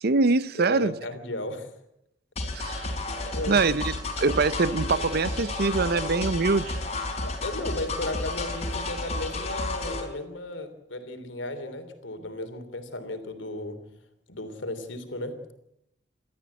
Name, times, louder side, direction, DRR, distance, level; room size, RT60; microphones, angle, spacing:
voice 1, 0.0-0.9 2.5-2.9 3.5-6.7, right 3 dB, 55° right, 0.7 m, -24 dB
voice 2, 0.6-1.7 3.3-3.7 7.2-13.8 14.3-15.4, left 2 dB, 75° left, 3.3 m, -35 dB
sound 1, 2.4-10.1, left 2 dB, 35° left, 4.5 m, -32 dB
28.0 x 13.5 x 8.4 m
head